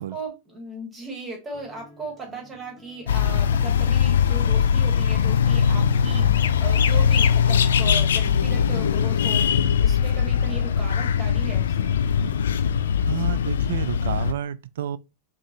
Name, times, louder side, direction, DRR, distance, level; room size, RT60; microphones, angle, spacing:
voice 1, 0.0-12.0, right 3 dB, 15° right, 2.0 m, -37 dB
Acoustic guitar, 1.5-9.5, right 1 dB, 20° left, 1.5 m, -44 dB
sound 1, 3.1-14.3, left 7 dB, 65° left, 0.4 m, -21 dB
voice 2, 13.1-15.0, right 10 dB, 60° right, 0.4 m, -30 dB
5.1 x 3.1 x 2.8 m
figure-of-eight pair, 90°, 0 cm